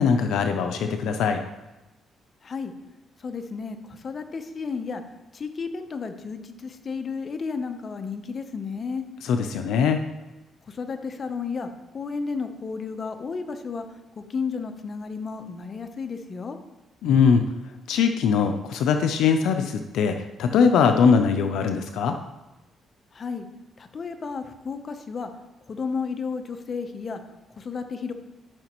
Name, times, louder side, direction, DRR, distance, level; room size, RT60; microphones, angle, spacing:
voice 1, 0.0-1.4 9.2-10.0 17.0-17.4 17.9-22.2, left 6 dB, 85° left, 6 dB, 0.5 m, -21 dB
voice 2, 3.2-5.0 5.3-9.0 10.7-13.8 14.2-16.6 23.1-23.5 23.8-25.3 25.7-27.2 27.6-28.1, left 5 dB, 45° left, 7 dB, 0.8 m, -32 dB
13.0 x 5.8 x 3.0 m, 1.0 s
cardioid pair, 90°, 0 cm